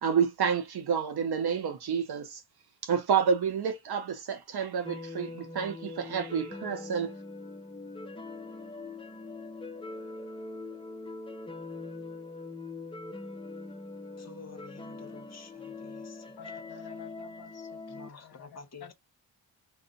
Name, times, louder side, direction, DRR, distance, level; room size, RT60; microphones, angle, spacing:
voice 1, 0.0-2.4 2.8-7.1, right 7 dB, 60° right, 0.7 m, -29 dB
sound 1, 4.8-18.1, left 3 dB, 15° left, 0.5 m, -42 dB
voice 2, 14.2-16.2 17.9-18.9, left 4 dB, 40° left, 1.0 m, -50 dB
voice 3, 16.4-18.9, left 7 dB, 60° left, 0.8 m, -50 dB
2.6 x 2.0 x 3.8 m
cardioid pair, 75°, 43 cm